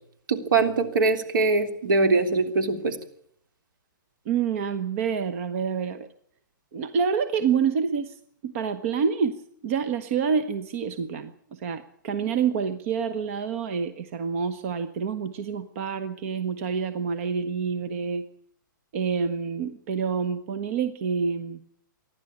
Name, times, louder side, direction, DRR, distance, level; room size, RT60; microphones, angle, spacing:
voice 1, 0.3-3.0, right 3 dB, 75° right, 6 dB, 3.4 m, -22 dB
voice 2, 4.2-6.1 6.7-8.1 8.4-18.3 18.9-21.6, right 6 dB, 40° right, 11 dB, 1.2 m, -27 dB
27.5 x 11.5 x 8.6 m, 0.66 s
hypercardioid pair, 160°, 11 cm